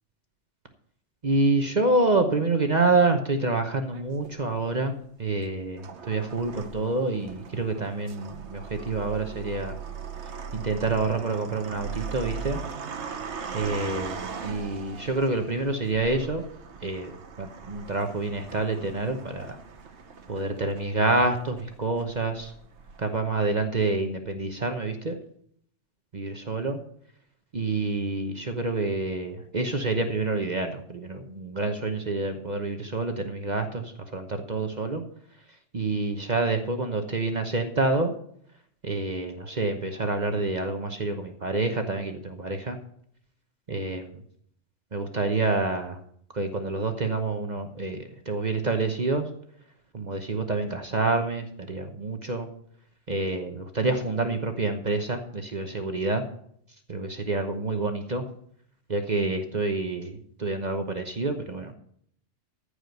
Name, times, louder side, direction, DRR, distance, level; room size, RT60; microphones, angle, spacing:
voice 1, 1.2-9.8 10.5-12.6 13.5-16.5 16.8-19.6 20.3-22.5 23.0-25.2 26.1-26.8 27.5-35.0 35.7-38.1 38.8-42.8 43.7-44.0 44.9-46.0 46.3-49.3 49.9-52.5 53.1-56.2 56.9-58.2 58.9-61.7, right 3 dB, 40° right, 6 dB, 1.0 m, -27 dB
sound 1, 3.9-4.7 5.4-23.2, right 6 dB, 75° right, 1.3 m, -40 dB
14.5 x 5.0 x 7.8 m, 0.66 s
omnidirectional pair, 1.2 m